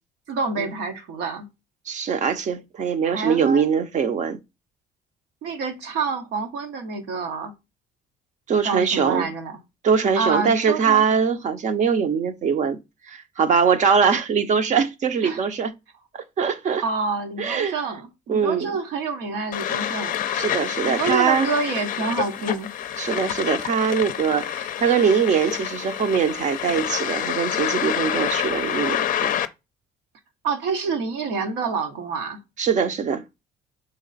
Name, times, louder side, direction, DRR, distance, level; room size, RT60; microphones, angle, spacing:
voice 1, 0.3-1.5 3.0-3.7 5.4-7.5 8.6-9.6 10.2-11.0 15.2-15.4 16.8-20.2 20.8-22.7 30.4-32.4, right 4 dB, 90° right, 1.1 m, -27 dB
voice 2, 1.9-4.4 8.5-9.3 9.8-12.8 13.1-15.7 16.1-16.8 17.4-17.8 18.3-18.8 20.3-21.5 23.0-29.3 32.6-33.2, right 6 dB, 45° right, 0.7 m, -22 dB
sound 1, 19.5-29.5, left 10 dB, 50° left, 0.5 m, -27 dB
4.1 x 3.3 x 3.9 m
cardioid pair, 110°, 17 cm